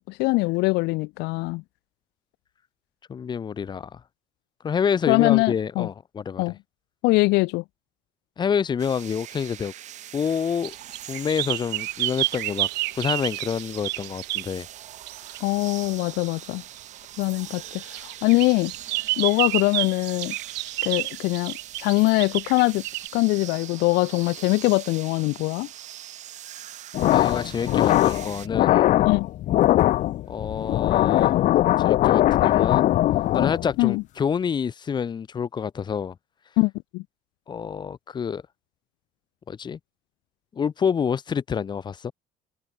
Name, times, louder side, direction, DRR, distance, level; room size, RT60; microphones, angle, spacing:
voice 1, 0.0-1.6 5.1-5.9 6.4-6.5 7.0-7.6 15.4-16.6 17.2-18.7 19.2-20.3 20.8-22.8 23.1-25.7 29.1-29.3 33.8-34.0 36.6-37.0, left 24 dB, 85° left, 0.6 m, -22 dB
voice 2, 3.1-4.0 4.6-6.4 8.4-9.7 10.1-10.7 11.1-12.7 12.9-14.7 27.0-28.8 30.3-31.4 31.8-32.9 33.3-36.1 37.5-38.4 39.5-39.8 40.5-42.1, left 7 dB, 25° left, 3.6 m, -27 dB
sound 1, 8.8-28.5, right 12 dB, 45° right, 3.4 m, -42 dB
sound 2, 10.6-14.5 15.1-15.4 17.2-23.1, right 21 dB, 80° right, 1.2 m, -29 dB
sound 3, 26.9-33.8, left 14 dB, 50° left, 0.7 m, -20 dB
cardioid pair, 170°, 17 cm